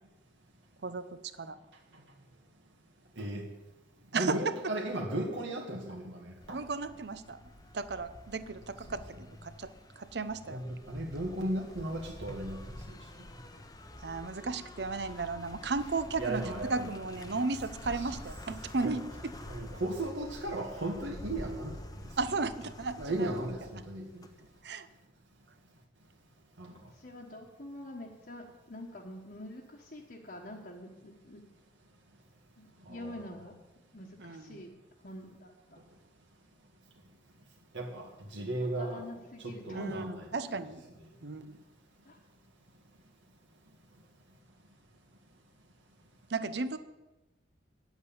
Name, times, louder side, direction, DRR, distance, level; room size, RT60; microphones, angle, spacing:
voice 1, 0.8-1.6 4.1-4.5 6.5-7.4 7.7-10.6 14.0-19.4 22.2-23.3 24.4-24.9 34.2-34.6 39.7-40.8 41.2-41.6 46.3-46.8, right 3 dB, 60° right, 13 dB, 0.7 m, -35 dB
voice 2, 3.2-3.5 4.1-6.6 8.9-9.0 10.5-13.0 16.2-16.9 18.8-18.9 19.5-21.8 23.0-24.3 26.6-26.7 32.8-33.2 37.7-39.0 39.4-40.2 40.5-40.6, right 1 dB, 85° right, -1 dB, 2.0 m, -36 dB
sound 1, 6.4-24.6, left 1 dB, 20° left, 0.8 m, -48 dB
voice 3, 26.7-31.4 32.6-33.5 33.9-34.7 35.0-35.8 38.6-40.0 42.0-42.2, left 1 dB, 50° left, -1 dB, 1.3 m, -46 dB
9.6 x 8.2 x 8.7 m, 1.1 s
head